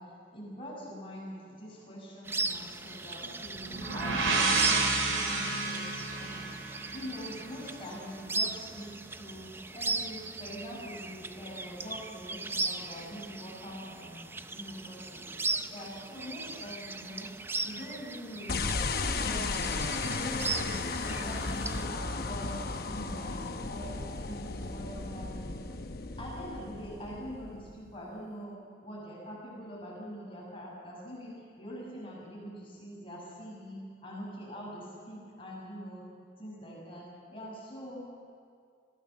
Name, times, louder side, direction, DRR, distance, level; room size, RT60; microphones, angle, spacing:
voice 1, 0.0-6.4 6.9-14.2 14.5-15.3 15.7-17.3 17.6-25.5 26.2-36.1 36.4-38.1, equal, 25° left, -4 dB, 6.2 m, -44 dB
sound 1, 2.2-21.9, right 3 dB, 10° right, 0.5 m, -38 dB
sound 2, 3.6-7.4, right 3 dB, 85° right, 3.4 m, -30 dB
sound 3, 18.5-27.9, left 3 dB, 50° left, 0.9 m, -35 dB
22.5 x 16.0 x 7.4 m, 2.2 s
head